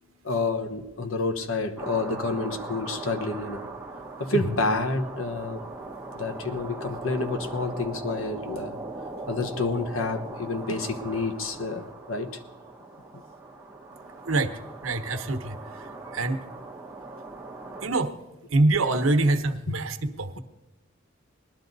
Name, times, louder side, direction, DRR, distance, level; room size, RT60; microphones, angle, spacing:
voice 1, 0.2-3.7 4.2-5.7 6.1-8.8 9.3-12.4 19.7-19.8, left 3 dB, 80° left, 1.1 m, -29 dB
sound 1, 1.8-17.9, right 3 dB, 10° right, 1.0 m, -40 dB
voice 2, 14.2-15.6 16.1-16.4 17.8-18.1 18.5-20.4, right 2 dB, 80° right, 1.1 m, -25 dB
20.0 x 12.0 x 4.0 m
head